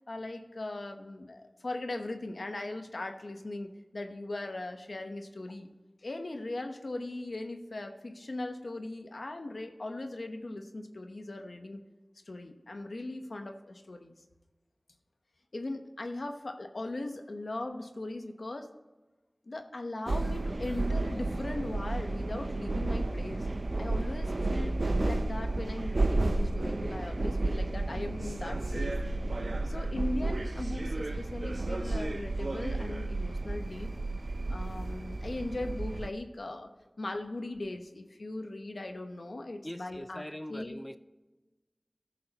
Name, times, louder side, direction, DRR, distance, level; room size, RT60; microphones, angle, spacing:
voice 1, 0.1-5.7 6.0-11.8 12.3-14.1 15.5-18.7 19.4-23.5 23.8-24.8 25.0-28.9 29.6-33.9 34.5-36.7 37.0-40.8, left 2 dB, 85° left, 1.0 m, -39 dB
sound 1, 20.1-36.1, right 2 dB, 70° right, 0.6 m, -32 dB
voice 2, 39.6-41.0, equal, 15° left, 0.6 m, -42 dB
15.0 x 6.5 x 2.9 m
wide cardioid pair, 50°, 0 cm